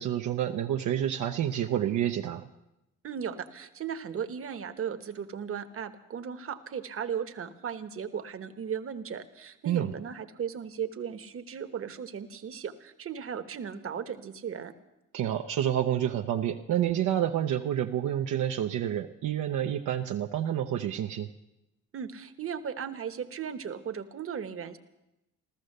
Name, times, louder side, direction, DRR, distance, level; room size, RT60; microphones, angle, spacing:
voice 1, 0.0-2.4 9.7-9.9 15.1-21.3, right 10 dB, 75° right, 3 dB, 0.8 m, -29 dB
voice 2, 3.0-14.7 21.9-24.8, right 7 dB, 45° right, 8 dB, 1.2 m, -36 dB
14.5 x 14.0 x 6.6 m, 0.91 s
cardioid pair, 90°, 30 cm